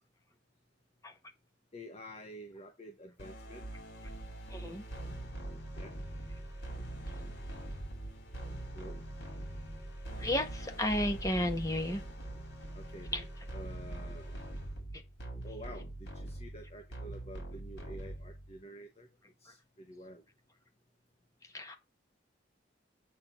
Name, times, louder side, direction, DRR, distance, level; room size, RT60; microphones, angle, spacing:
voice 1, 1.7-3.6 5.7-5.9 8.7-9.0 12.7-13.3 13.5-14.4 15.4-19.1 19.4-20.2, equal, 35° left, 1.2 m, -49 dB
sound 1, 3.2-18.6, right 1 dB, 60° left, 4.9 m, -43 dB
voice 2, 4.5-4.8 10.2-12.0 13.1-13.2 21.5-21.7, left 1 dB, 15° left, 1.6 m, -32 dB
8.6 x 4.2 x 6.0 m
head